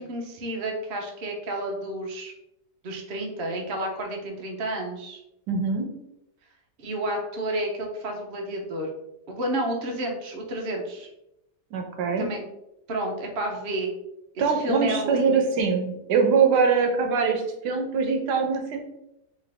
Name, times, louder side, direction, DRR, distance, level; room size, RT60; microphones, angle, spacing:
voice 1, 0.0-2.3 2.8-5.2 6.8-8.9 9.3-11.1 12.2-12.4 12.9-13.9 14.3-15.4, right 1 dB, 45° right, 1 dB, 0.8 m, -31 dB
voice 2, 5.5-5.9 11.7-12.3 14.4-18.8, right 5 dB, 80° right, 4 dB, 1.3 m, -23 dB
4.8 x 2.7 x 3.4 m, 0.84 s
omnidirectional pair, 1.8 m